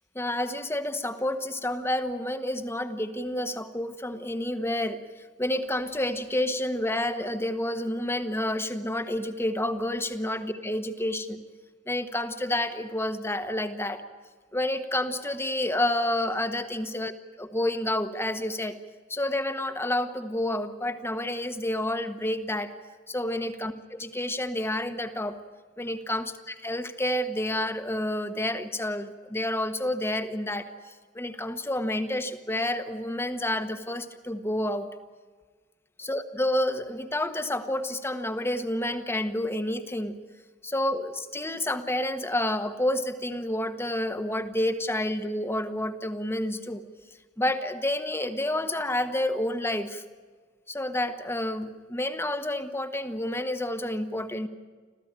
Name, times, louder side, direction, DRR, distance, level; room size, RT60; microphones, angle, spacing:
voice 1, 0.1-5.0 5.4-11.4 11.9-14.0 14.5-17.1 17.4-18.8 19.1-22.7 23.1-25.4 25.8-34.9 36.0-40.2 40.6-46.8 47.4-50.0 50.7-54.5, left 1 dB, 15° left, 9 dB, 1.4 m, -29 dB
26.5 x 15.5 x 9.0 m, 1.5 s
head